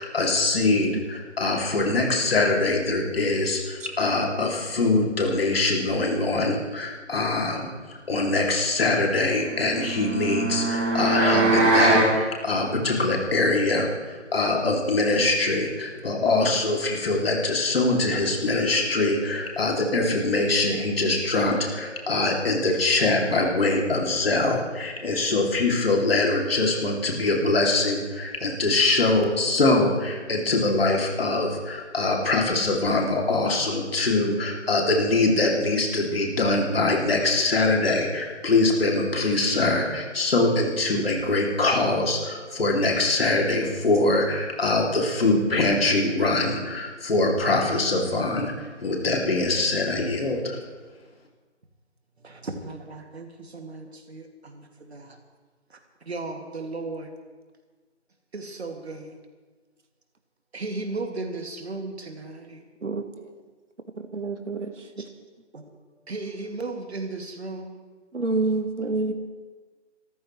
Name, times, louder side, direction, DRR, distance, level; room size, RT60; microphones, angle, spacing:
voice 1, 0.0-7.6 8.1-48.5 48.8-50.6, left 2 dB, 50° left, 0 dB, 2.8 m, -23 dB
sound 1, 9.5-12.1, right 2 dB, 25° right, 3.3 m, -22 dB
voice 2, 52.2-55.2 56.0-57.1 58.3-59.2 60.5-62.6 65.0-65.1 65.5-65.6 66.1-67.8, right 3 dB, 60° right, 4 dB, 2.4 m, -35 dB
voice 3, 62.8-63.3 64.0-65.1 68.1-69.1, right 3 dB, 75° right, 7 dB, 1.5 m, -28 dB
27.0 x 14.0 x 3.2 m, 1.4 s
figure-of-eight pair, 155°, 37 cm